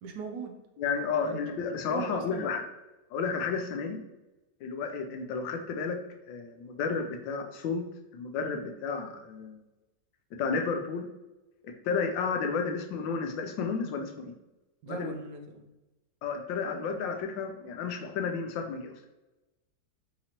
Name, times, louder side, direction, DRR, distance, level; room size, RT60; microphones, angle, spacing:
voice 1, 0.0-0.6 1.2-1.5 1.9-2.5 14.8-15.7, right 4 dB, 75° right, 4 dB, 1.1 m, -39 dB
voice 2, 0.8-2.6 3.1-4.0 4.6-6.0 6.3-7.8 8.1-9.6 10.4-11.1 11.6-14.3 14.9-15.1 16.2-18.9, left 5 dB, 85° left, 4 dB, 1.3 m, -32 dB
4.0 x 2.9 x 2.8 m, 1.0 s
omnidirectional pair, 2.0 m